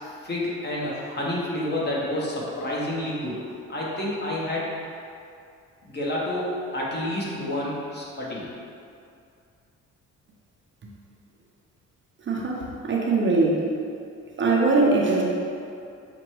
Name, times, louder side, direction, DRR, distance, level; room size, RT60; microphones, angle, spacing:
voice 1, 0.2-3.4 3.7-4.7 5.9-8.4, left 1 dB, 35° left, -5 dB, 1.0 m, -29 dB
voice 2, 12.3-13.7 14.4-15.2, right 3 dB, 40° right, -2 dB, 0.6 m, -21 dB
5.9 x 2.2 x 3.0 m, 2.4 s
cardioid pair, 90°, 30 cm